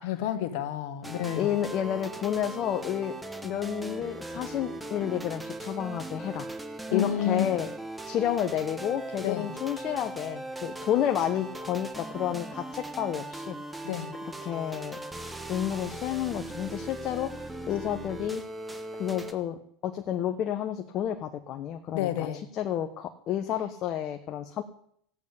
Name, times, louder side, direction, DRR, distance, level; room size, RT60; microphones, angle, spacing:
voice 1, 0.0-1.6 6.9-7.5 9.2-9.5 13.8-14.1 21.9-22.4, left 11 dB, 65° left, 7 dB, 1.8 m, -30 dB
sound 1, 1.0-19.3, right 2 dB, 10° right, 1.7 m, -39 dB
voice 2, 1.4-3.1 3.4-6.5 6.9-7.7 8.0-13.6 14.4-15.0 15.5-18.4 18.9-22.3 22.5-24.6, left 10 dB, 50° left, 6 dB, 1.1 m, -30 dB
14.5 x 8.6 x 8.6 m, 0.68 s
hypercardioid pair, 90°, 0 cm